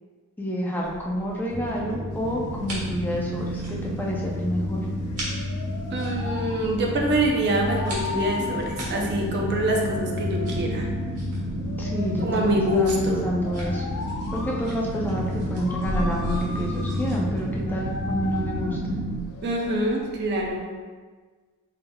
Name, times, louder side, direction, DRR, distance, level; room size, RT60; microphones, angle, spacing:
voice 1, 0.4-4.8 11.8-13.8 14.3-18.8, equal, 10° left, -3 dB, 0.4 m, -28 dB
sound 1, 0.8-20.5, equal, 75° right, 1.4 m, -40 dB
sound 2, 1.5-19.2, equal, 45° left, 0.8 m, -31 dB
sound 3, 2.1-20.2, left 4 dB, 75° left, 0.4 m, -39 dB
voice 2, 5.9-10.9 12.2-13.2 19.4-20.7, right 1 dB, 50° right, 0 dB, 0.5 m, -25 dB
4.1 x 3.7 x 2.2 m, 1.4 s
head